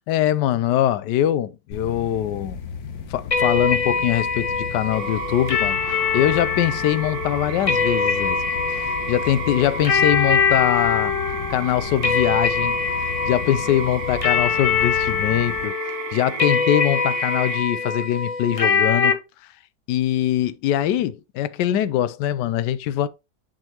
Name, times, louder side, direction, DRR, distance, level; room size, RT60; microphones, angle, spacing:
voice 1, 0.1-2.6 3.1-5.8 6.1-8.4 8.7-11.1 11.5-12.8 13.3-19.2 19.9-23.1, left 11 dB, 85° left, 1.2 m, -22 dB
sound 1, 1.7-15.7, left 6 dB, 65° left, 1.3 m, -35 dB
sound 2, 3.3-19.1, left 5 dB, 50° left, 0.4 m, -23 dB
sound 3, 4.9-17.6, right 8 dB, 65° right, 1.4 m, -34 dB
10.0 x 3.9 x 2.9 m
omnidirectional pair, 1.8 m